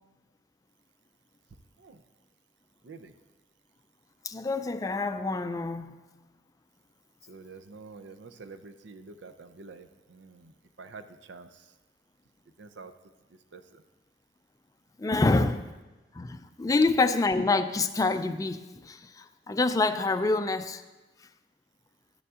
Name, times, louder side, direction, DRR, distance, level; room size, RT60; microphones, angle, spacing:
voice 1, 4.2-5.9 15.0-15.5 16.1-20.8, left 3 dB, 20° left, 10 dB, 0.3 m, -26 dB
voice 2, 7.2-11.7 12.6-12.9 13.3-13.8, right 4 dB, 85° right, 10 dB, 0.6 m, -48 dB
12.5 x 9.5 x 2.4 m, 1.1 s
head